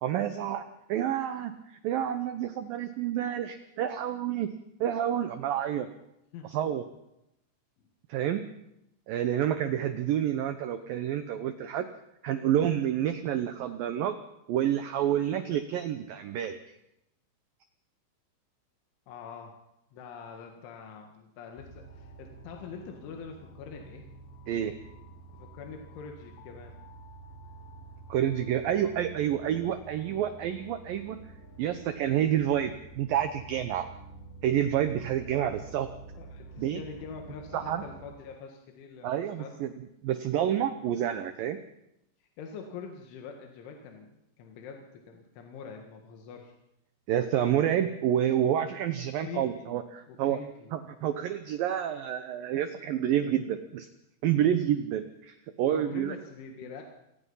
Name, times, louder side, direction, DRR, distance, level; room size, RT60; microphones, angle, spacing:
voice 1, 0.0-0.6 0.9-1.5 1.8-4.5 4.8-5.9 6.5-6.8 8.1-8.4 9.1-11.9 12.2-14.2 14.5-16.6 24.5-24.8 28.1-31.2 31.6-33.9 34.4-35.9 36.6-36.8 37.5-37.8 39.0-39.7 40.0-41.6 47.1-50.4 50.7-53.9 54.2-56.1, right 10 dB, 80° right, 10 dB, 2.0 m, -28 dB
voice 2, 19.1-19.6 19.9-24.1 25.3-26.8 36.2-39.6 42.2-46.6 49.1-49.8 50.1-50.8 55.7-56.8, left 6 dB, 90° left, 2 dB, 4.2 m, -44 dB
sound 1, 21.6-38.1, right 3 dB, 55° left, 3.4 m, -49 dB
27.5 x 18.5 x 5.6 m, 0.86 s
omnidirectional pair, 5.3 m